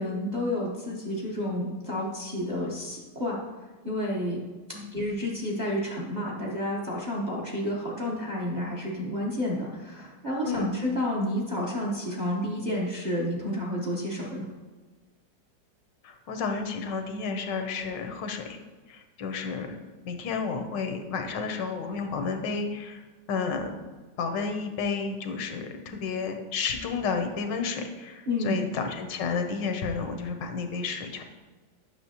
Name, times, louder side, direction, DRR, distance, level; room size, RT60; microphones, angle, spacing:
voice 1, 0.0-3.4 3.8-4.4 4.9-14.5 28.3-28.6, left 1 dB, 30° right, -3 dB, 0.9 m, -30 dB
voice 2, 16.0-18.6 18.9-19.8 20.0-23.7 24.2-31.2, left 5 dB, 75° left, 6 dB, 1.4 m, -31 dB
8.7 x 5.9 x 2.9 m, 1.3 s
omnidirectional pair, 2.0 m